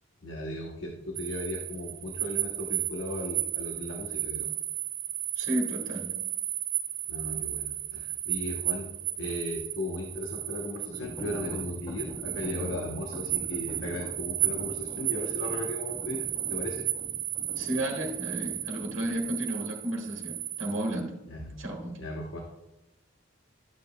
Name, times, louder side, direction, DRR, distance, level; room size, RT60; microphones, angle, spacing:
voice 1, 0.2-4.6 7.1-8.9 9.2-16.8 21.3-21.5 22.0-22.4, left 1 dB, 70° left, 0 dB, 0.9 m, -36 dB
sound 1, 1.2-21.0, right 12 dB, 45° right, 0.6 m, -34 dB
voice 2, 5.4-6.1 17.5-21.1 21.6-22.0, right 1 dB, 70° right, 0 dB, 1.5 m, -32 dB
sound 2, 10.9-19.2, equal, 25° left, 3.1 m, -44 dB
12.0 x 6.8 x 2.2 m, 0.92 s
head